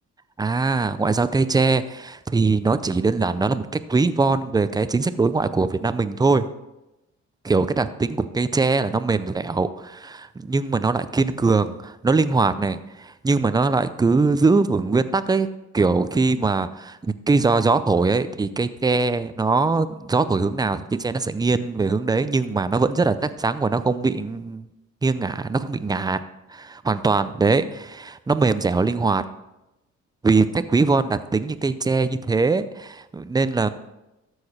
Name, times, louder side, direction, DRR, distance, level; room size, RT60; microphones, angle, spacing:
voice 1, 0.4-6.4 7.4-15.5 15.7-24.6 25.0-26.2 26.5-29.2 30.2-33.7, right 3 dB, 15° right, 13 dB, 0.5 m, -22 dB
13.0 x 4.8 x 4.3 m, 0.95 s
cardioid pair, 90°, 30 cm